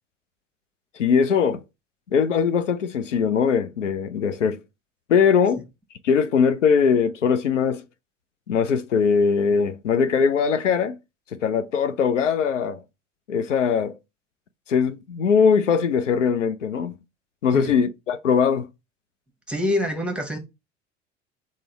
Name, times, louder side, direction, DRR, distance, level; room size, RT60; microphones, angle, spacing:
voice 1, 1.0-1.6 2.1-4.6 5.1-5.6 6.0-7.8 8.5-11.0 11.3-12.8 13.3-14.0 14.7-17.0 17.4-18.7, left 6 dB, 90° left, 0.5 m, -21 dB
voice 2, 19.5-20.4, left 1 dB, 5° right, 1.0 m, -25 dB
3.7 x 2.1 x 4.4 m
figure-of-eight pair, 70°, 36 cm